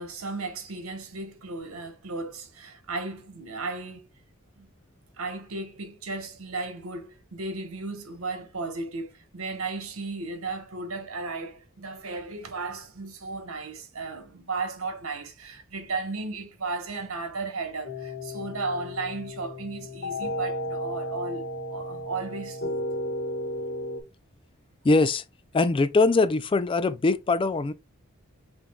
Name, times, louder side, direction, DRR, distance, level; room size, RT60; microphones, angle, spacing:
voice 1, 0.0-4.0 4.6-4.7 5.2-22.8, right 3 dB, 90° right, 1.2 m, -35 dB
sound 1, 17.8-24.0, left 1 dB, 50° left, 1.8 m, -34 dB
voice 2, 24.8-25.2 25.5-27.7, left 3 dB, 25° left, 0.3 m, -22 dB
5.9 x 3.5 x 2.3 m
head